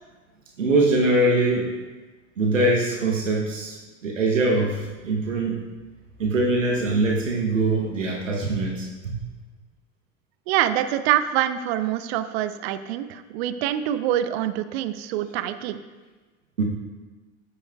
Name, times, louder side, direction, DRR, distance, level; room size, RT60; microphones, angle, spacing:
voice 1, 0.6-1.7 2.4-5.6 6.2-9.1 16.6-16.7, right 2 dB, 80° right, 0 dB, 1.0 m, -22 dB
voice 2, 10.5-15.8, right 12 dB, 55° right, 11 dB, 0.6 m, -25 dB
9.5 x 8.3 x 2.3 m, 1.2 s
figure-of-eight pair, 70°, 38 cm